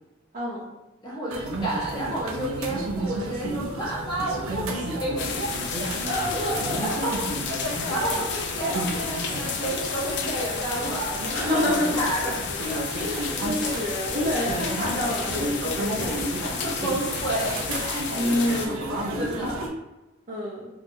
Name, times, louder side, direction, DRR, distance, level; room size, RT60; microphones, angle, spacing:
voice 1, 0.3-0.7 6.0-6.8 11.3-12.0 12.9-16.2 18.1-19.0 20.3-20.7, left 1 dB, 40° right, -8 dB, 0.7 m, -28 dB
voice 2, 1.0-5.4 5.7-6.5 6.8-7.2 7.5-12.4 12.7-12.8 15.9-17.6 19.2-19.6, right 1 dB, 20° left, -5 dB, 0.8 m, -31 dB
sound 1, 1.3-19.7, right 1 dB, 85° right, 0.5 m, -32 dB
sound 2, 5.2-18.7, left 6 dB, 55° left, 0.4 m, -32 dB
3.3 x 2.3 x 2.6 m, 1.0 s
head